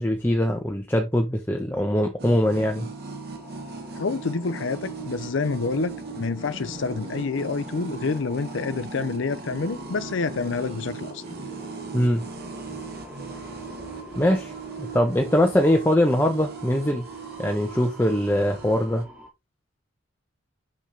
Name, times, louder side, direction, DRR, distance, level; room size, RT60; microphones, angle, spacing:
voice 1, 0.0-2.9 11.9-12.2 14.2-14.5 14.8-17.1 17.4-19.1, left 1 dB, 10° left, 0.9 m, -22 dB
sound 1, 2.2-19.3, left 1 dB, 10° right, 3.1 m, -46 dB
sound 2, 2.2-19.0, right 4 dB, 50° right, 1.9 m, -38 dB
voice 2, 4.0-11.2, left 4 dB, 60° left, 0.6 m, -28 dB
6.7 x 6.1 x 3.4 m
head